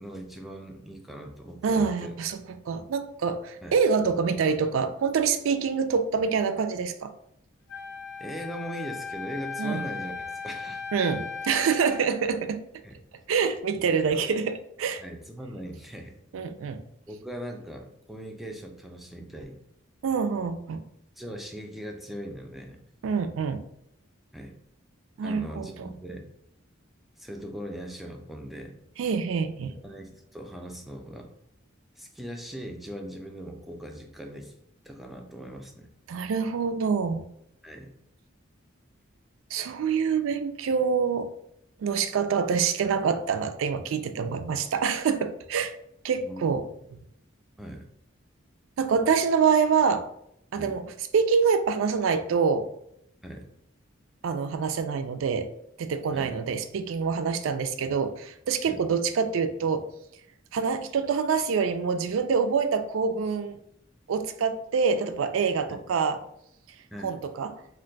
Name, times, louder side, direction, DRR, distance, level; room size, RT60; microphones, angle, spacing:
voice 1, 0.0-2.1 3.6-3.7 8.2-10.1 10.4-10.8 12.8-12.9 13.9-14.2 15.0-16.1 17.1-19.6 21.2-22.8 24.3-24.5 25.2-26.3 27.2-28.7 29.7-31.3 32.0-34.5 34.8-35.9 37.6-37.9 46.2-46.6 47.6-47.9 50.5-50.8 53.2-53.4 56.1-56.3 58.7-58.8 65.7-65.8 66.9-67.1, equal, ahead, 2 dB, 0.3 m, -40 dB
voice 2, 1.6-2.4 2.7-7.1 9.6-9.8 10.9-12.6 13.3-15.0 16.3-16.8 20.0-20.8 23.0-23.6 25.2-25.9 29.0-29.7 36.1-37.3 39.5-41.3 41.8-45.7 46.0-46.7 48.8-50.1 50.5-50.8 51.1-52.7 54.2-55.5 55.8-59.9 60.5-63.6 64.1-66.2 67.0-67.5, right 5 dB, 75° right, 9 dB, 0.3 m, -26 dB
Wind instrument woodwind instrument, 7.7-12.1, left 5 dB, 60° left, 0.6 m, -37 dB
2.5 x 2.2 x 3.8 m, 0.74 s
head